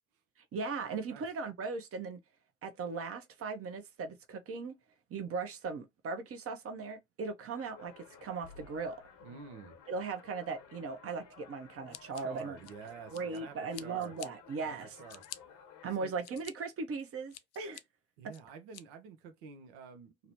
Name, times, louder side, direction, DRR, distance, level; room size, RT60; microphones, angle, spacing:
voice 1, 0.5-2.2 2.6-4.8 5.1-9.0 9.9-12.6 13.1-15.0 15.8-17.8, right 4 dB, 45° right, 0.7 m, -38 dB
sound 1, 7.5-16.0, left 6 dB, 65° left, 0.9 m, -56 dB
voice 2, 9.2-9.8 12.2-14.1 14.6-15.2 16.0-16.1 18.2-20.3, right 5 dB, 80° right, 0.6 m, -49 dB
Scissors, 11.9-13.4 13.7-14.3 14.8-15.4 15.9-16.5 17.0-17.8 18.3-18.8, left 13 dB, 50° left, 0.4 m, -48 dB
2.8 x 2.0 x 2.8 m
hypercardioid pair, 55°, 32 cm